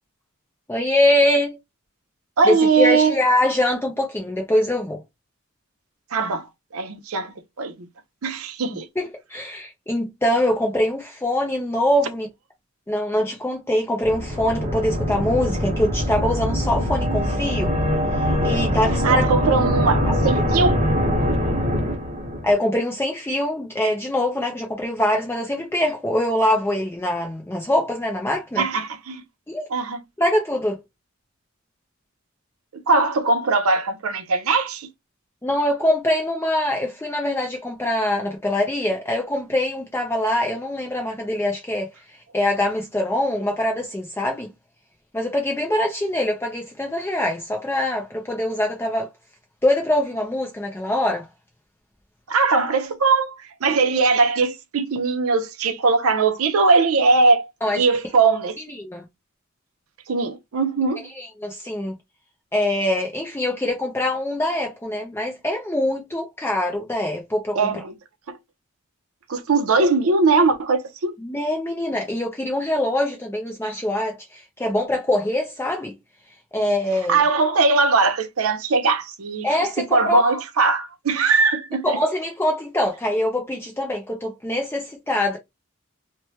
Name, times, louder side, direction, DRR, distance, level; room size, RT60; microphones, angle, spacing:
voice 1, 0.7-1.6 2.4-5.0 9.0-12.3 12.9-17.8 18.2-19.2 22.4-28.6 29.5-29.7 30.2-30.8 35.4-44.5 45.1-49.1 49.6-51.3 57.6-57.8 58.7-59.0 61.2-62.0 62.5-67.8 71.2-75.9 76.5-77.2 79.4-80.4 81.8-85.4, left 1 dB, 10° left, 0.4 m, -23 dB
voice 2, 2.4-3.2 6.1-6.5 6.7-7.9 8.2-8.9 19.0-20.8 28.6-29.2 29.7-30.0 32.7-34.9 52.3-53.3 53.6-57.4 57.7-58.6 60.1-61.1 67.6-67.9 68.3-68.4 69.3-71.1 77.1-82.0, right 4 dB, 80° right, 0.6 m, -20 dB
sound 1, 14.0-22.5, equal, 30° right, 0.7 m, -23 dB
3.0 x 2.2 x 2.8 m
head